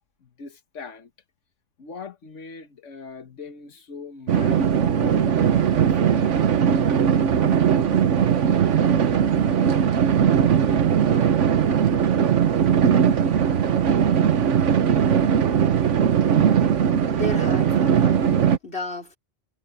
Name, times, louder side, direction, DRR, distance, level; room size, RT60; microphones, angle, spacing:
voice 1, 0.2-1.1 1.8-5.7 6.0-6.6, left 5 dB, 85° left, 1.6 m, -40 dB
sound 1, 4.3-18.6, right 8 dB, 85° right, 1.3 m, -19 dB
voice 2, 17.1-19.2, left 2 dB, 60° left, 4.5 m, -33 dB
omnidirectional pair, 1.2 m